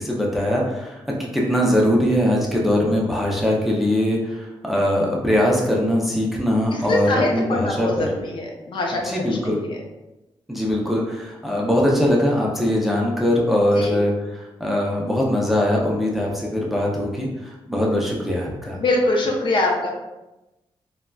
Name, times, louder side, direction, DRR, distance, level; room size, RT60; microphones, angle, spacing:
voice 1, 0.0-8.1 9.0-9.6 10.5-18.8, left 1 dB, ahead, -3 dB, 0.5 m, -21 dB
voice 2, 6.7-9.8 13.8-14.0 18.8-19.9, left 2 dB, 60° left, 0 dB, 0.6 m, -24 dB
3.6 x 2.2 x 2.2 m, 0.99 s
wide cardioid pair, 135°, 10 cm